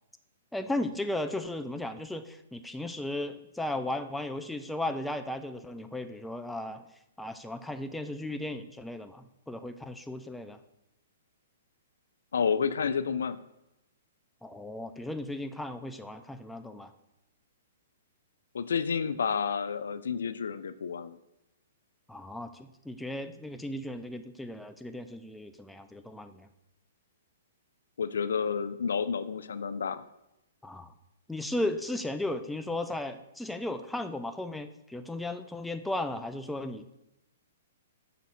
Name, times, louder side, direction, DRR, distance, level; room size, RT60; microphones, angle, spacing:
voice 1, 0.5-6.8 7.2-10.6 14.4-16.9 22.1-26.5 30.6-30.9 31.3-36.8, left 1 dB, 5° left, 8 dB, 0.3 m, -35 dB
voice 2, 12.3-13.4 18.5-21.2 28.0-30.0, left 6 dB, 80° left, 13 dB, 0.3 m, -30 dB
5.8 x 4.0 x 4.2 m, 0.88 s
hypercardioid pair, 140°, 0 cm